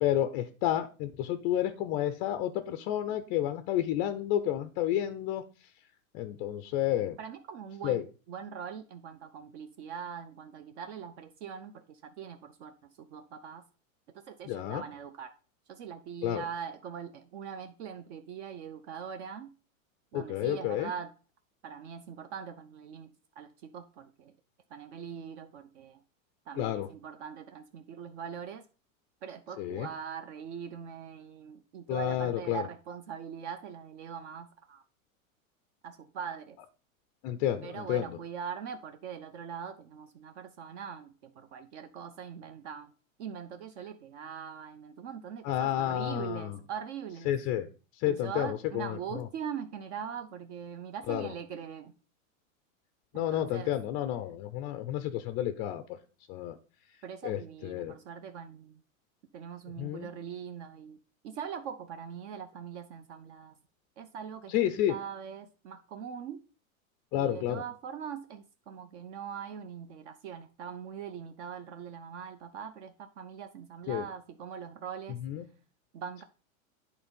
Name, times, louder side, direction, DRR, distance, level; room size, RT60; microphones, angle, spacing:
voice 1, 0.0-5.4 6.1-7.2 7.8-8.0 14.5-14.8 16.2-16.4 20.1-20.9 26.6-26.9 29.6-29.9 31.9-32.6 37.2-38.2 45.4-46.6 47.3-47.7 48.0-49.3 51.1-51.3 53.1-56.0 56.3-56.6 57.2-57.9 59.8-60.1 64.5-65.0 67.1-67.6 73.9-74.1 75.2-75.5, left 12 dB, 25° left, 10 dB, 0.3 m, -30 dB
voice 2, 7.2-13.6 14.3-15.4 15.7-19.5 20.1-21.1 21.6-23.1 23.4-24.3 24.7-26.0 26.5-28.6 29.2-34.8 35.8-36.6 37.6-42.9 43.2-47.3 48.0-51.9 53.1-53.7 57.0-58.8 59.3-61.0 61.2-63.5 64.0-64.5 64.9-66.4 67.1-75.2 75.9-76.2, right 7 dB, 55° right, 8 dB, 0.8 m, -42 dB
8.6 x 4.1 x 5.2 m, 0.36 s
hypercardioid pair, 130°, 41 cm